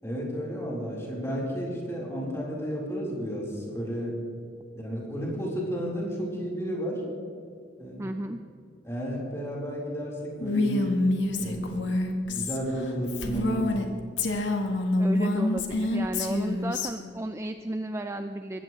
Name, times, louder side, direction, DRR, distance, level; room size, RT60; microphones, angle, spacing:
voice 1, 0.0-4.2 4.7-7.0 7.8-8.2 8.8-11.0 11.4-11.8 12.3-13.7, equal, 15° left, -5 dB, 4.2 m, -32 dB
voice 2, 8.0-8.4 15.0-18.6, right 1 dB, 15° right, 7 dB, 0.4 m, -33 dB
Female speech woman speaking, 10.4-13.9 14.2-16.9, left 2 dB, 75° left, 1.6 m, -27 dB
21.5 x 15.5 x 3.2 m, 2.3 s
head